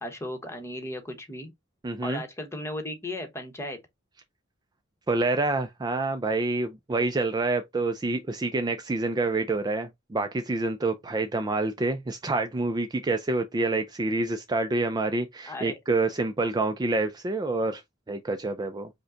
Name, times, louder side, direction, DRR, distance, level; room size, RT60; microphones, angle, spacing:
voice 1, 0.0-1.5 2.0-3.8 15.5-15.8, left 1 dB, 15° left, 1.0 m, -35 dB
voice 2, 1.8-2.2 5.1-17.8 18.1-18.9, right 3 dB, 20° right, 0.3 m, -27 dB
5.2 x 2.2 x 3.7 m
head